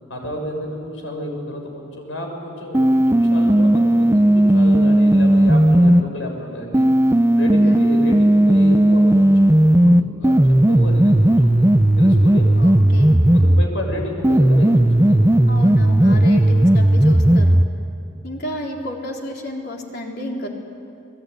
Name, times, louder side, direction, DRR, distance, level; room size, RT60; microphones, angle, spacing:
voice 1, 0.1-6.9 7.4-10.4 10.7-11.7 12.0-12.5 13.3-15.6 16.0-16.6, equal, 80° left, 2 dB, 6.4 m, -31 dB
sound 1, 2.7-6.0 6.7-13.7 14.2-17.7, right 1 dB, 15° right, 0.6 m, -14 dB
voice 2, 12.6-13.2 15.5-17.6 18.2-20.5, left 1 dB, 55° left, 0 dB, 3.9 m, -31 dB
29.5 x 20.5 x 9.6 m, 2.6 s
head